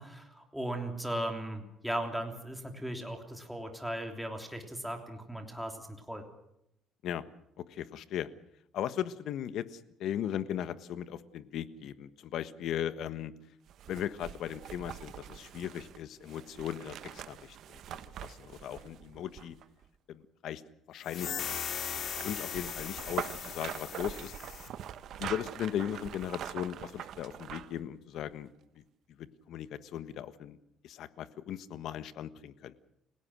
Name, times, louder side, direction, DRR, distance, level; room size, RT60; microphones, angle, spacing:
voice 1, 0.0-6.2, right 1 dB, ahead, 3 dB, 3.3 m, -37 dB
voice 2, 7.7-8.3 8.7-13.3 13.9-17.8 18.2-19.6 20.1-20.6 20.9-21.3 22.2-24.3 25.2-28.5 29.2-30.6 30.8-32.7, left 10 dB, 65° left, 13 dB, 1.4 m, -37 dB
sound 1, 13.7-19.9 21.5-27.8 28.2-28.3, right 10 dB, 60° right, 1.2 m, -44 dB
sound 2, 21.0-24.7, left 8 dB, 50° left, 3.0 m, -38 dB
29.5 x 17.0 x 6.3 m, 0.79 s
cardioid pair, 140°, 0 cm